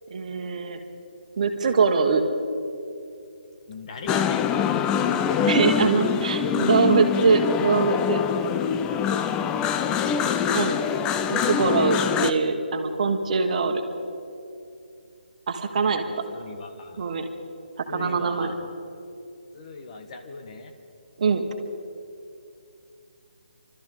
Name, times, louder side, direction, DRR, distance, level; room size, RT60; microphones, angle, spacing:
voice 1, 0.1-0.8 1.4-2.2 5.4-8.2 10.5-10.8 11.3-13.8 15.5-16.0 17.0-17.3 17.9-18.5 21.2-21.4, right 5 dB, 50° right, 5 dB, 1.5 m, -23 dB
voice 2, 3.7-4.5 5.3-5.9 6.3-6.8 9.6-10.5 15.7-17.1 17.9-18.6 19.5-20.7, left 3 dB, 45° left, 4 dB, 1.5 m, -40 dB
sound 1, 4.1-12.3, left 8 dB, 15° left, 0.4 m, -24 dB
27.5 x 13.5 x 3.9 m, 2.5 s
figure-of-eight pair, 155°, 5 cm